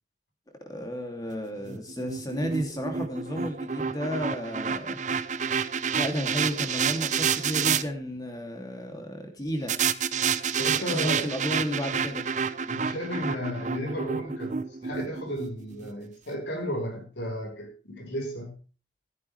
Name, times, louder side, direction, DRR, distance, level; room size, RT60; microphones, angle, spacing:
voice 1, 0.7-5.0 5.9-9.7 10.9-12.2, equal, 20° left, 2.9 m, -32 dB
sound 1, 1.6-7.8 9.7-15.9, right 6 dB, 45° right, 0.7 m, -29 dB
voice 2, 10.6-11.3 12.7-14.6 14.8-18.6, equal, 90° left, 5.0 m, -34 dB
14.0 x 10.5 x 3.4 m
head